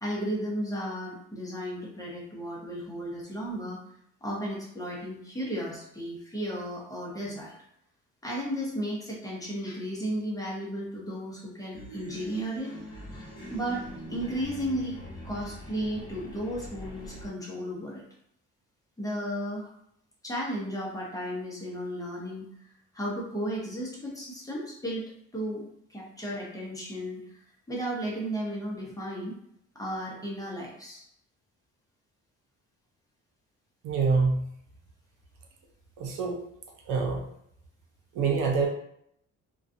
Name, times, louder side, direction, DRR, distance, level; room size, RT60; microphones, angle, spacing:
voice 1, 0.0-3.8 4.2-7.5 8.2-12.7 13.5-18.0 19.0-19.7 20.2-22.5 22.9-27.2 27.7-29.3 29.7-31.1, equal, 10° left, -4 dB, 0.7 m, -34 dB
sound 1, 11.7-17.3, equal, 60° left, 0.9 m, -42 dB
voice 2, 33.8-34.4 36.0-36.4 36.9-37.2 38.1-38.7, right 4 dB, 85° right, 0 dB, 0.6 m, -25 dB
2.4 x 2.3 x 2.6 m, 0.73 s
cardioid pair, 90°, 30 cm